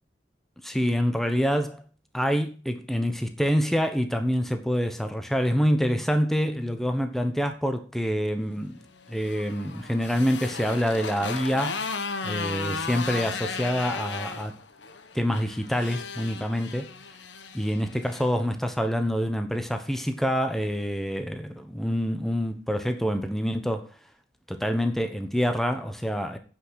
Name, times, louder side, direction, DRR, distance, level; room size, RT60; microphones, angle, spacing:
voice 1, 0.6-1.8 2.1-8.8 9.1-11.8 12.2-14.5 15.1-16.9 17.5-23.9 24.5-26.4, equal, ahead, 1.0 m, -26 dB
Motorcycle, 8.9-18.3, left 4 dB, 85° left, 1.1 m, -35 dB
9.1 x 6.1 x 6.4 m
head